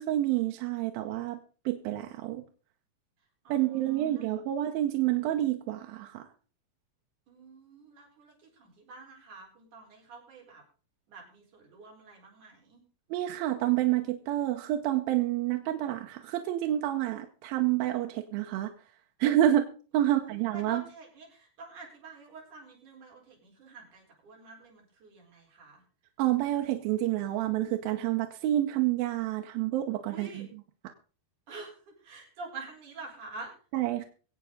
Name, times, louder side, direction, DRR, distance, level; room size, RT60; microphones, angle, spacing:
voice 1, 0.0-1.4 1.7-2.4 3.5-6.3 13.1-18.7 19.2-19.7 19.9-20.8 26.2-30.5 33.7-34.1, right 13 dB, 80° right, 4 dB, 2.7 m, -28 dB
voice 2, 3.4-4.3 7.3-10.6 11.1-12.8 20.0-25.8 30.1-30.5 31.5-33.5, right 4 dB, 55° right, -1 dB, 5.6 m, -47 dB
24.0 x 8.1 x 3.9 m, 0.39 s
omnidirectional pair, 4.2 m